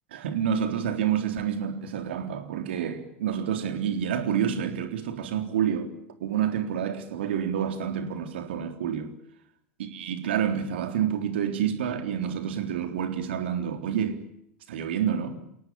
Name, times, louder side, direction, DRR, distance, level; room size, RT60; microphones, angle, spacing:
voice 1, 0.1-5.9 6.2-9.1 9.8-14.2 14.7-15.4, right 8 dB, 65° right, 3.7 m, -28 dB
29.0 x 18.0 x 8.7 m
figure-of-eight pair, 80°, 6 cm